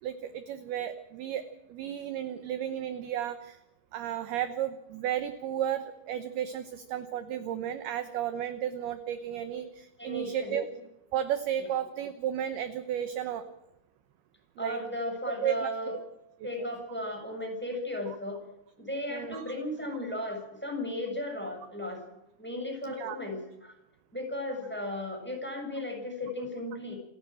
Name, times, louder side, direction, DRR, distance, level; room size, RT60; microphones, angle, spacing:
voice 1, 0.0-1.4 1.7-3.6 3.9-10.6 11.1-13.5 14.6-14.8 15.4-15.7 19.1-19.4 22.8-23.2, right 10 dB, 70° right, 10 dB, 2.6 m, -33 dB
voice 2, 10.0-10.6 11.6-11.7 14.6-15.9 16.4-18.4 18.8-22.0 22.4-23.7 24.1-27.0, left 1 dB, ahead, 2 dB, 6.7 m, -35 dB
28.0 x 12.5 x 7.7 m, 0.92 s
omnidirectional pair, 5.4 m